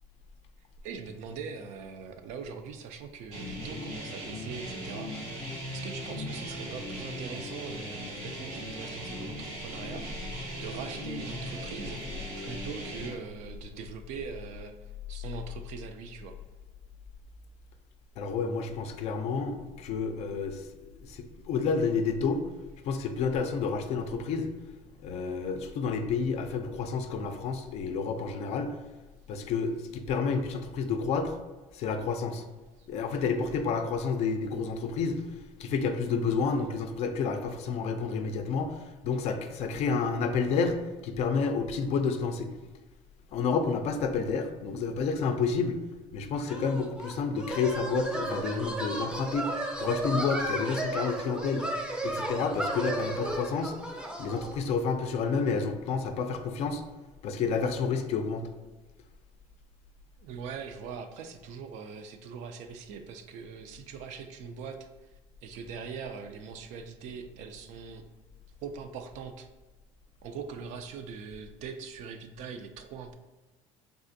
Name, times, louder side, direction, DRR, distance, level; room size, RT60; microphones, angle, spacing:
voice 1, 0.8-5.1 5.7-10.1 10.6-12.0 12.4-14.7 15.1-16.4 60.2-64.8 65.4-68.0 68.6-69.5 70.2-73.2, right 6 dB, 65° right, 7 dB, 0.4 m, -41 dB
sound 1, 3.3-13.1, equal, 85° right, 1.3 m, -38 dB
voice 2, 18.2-20.6 21.1-22.4 22.8-24.5 25.0-28.7 29.3-31.4 31.7-32.4 32.9-35.2 35.6-42.5 43.3-45.8 46.1-49.5 49.8-51.6 52.0-53.8 54.2-56.8 57.2-58.4, left 5 dB, 55° left, 7 dB, 0.4 m, -30 dB
sound 2, 46.5-54.6, right 1 dB, 5° right, 0.5 m, -34 dB
3.5 x 2.4 x 2.6 m, 1.2 s
cardioid pair, 125°, 13 cm